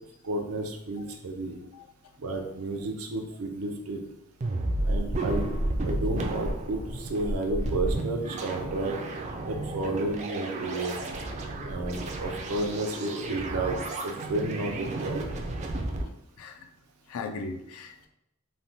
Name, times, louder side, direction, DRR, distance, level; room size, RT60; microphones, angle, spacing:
voice 1, 0.2-1.6 2.2-4.0 4.8-5.5 5.8-9.0 9.5-11.0 11.6-13.7 14.0-15.2, right 2 dB, 90° right, 4 dB, 0.5 m, -31 dB
sound 1, 4.4-16.0, right 2 dB, 35° right, 0.3 m, -32 dB
voice 2, 16.4-16.7 17.1-18.1, left 4 dB, 75° left, 7 dB, 0.4 m, -38 dB
3.2 x 2.1 x 2.7 m, 0.81 s
head